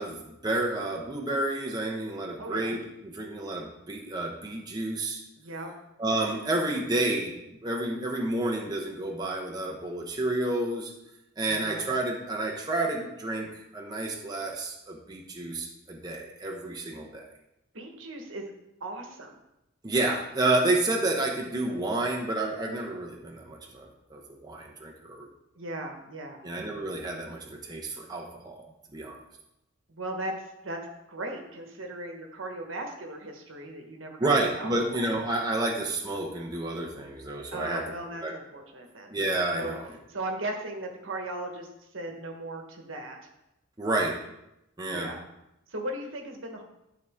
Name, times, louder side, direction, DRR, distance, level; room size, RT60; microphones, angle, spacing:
voice 1, 0.0-5.2 6.0-7.3 7.6-10.9 11.4-17.3 19.8-25.3 26.4-28.6 28.9-29.2 34.2-37.8 38.2-38.3 39.1-39.8 43.8-44.1 44.8-45.1, right 2 dB, 20° right, -1 dB, 0.9 m, -30 dB
voice 2, 2.4-2.7 5.4-5.7 11.5-11.8 17.7-18.4 18.8-19.3 25.6-26.4 29.9-30.8 31.1-35.1 37.5-39.1 39.5-39.7 40.1-43.2 44.9-45.2 45.7-46.6, right 1 dB, 70° right, 2 dB, 1.4 m, -37 dB
11.0 x 4.8 x 3.6 m, 0.88 s
head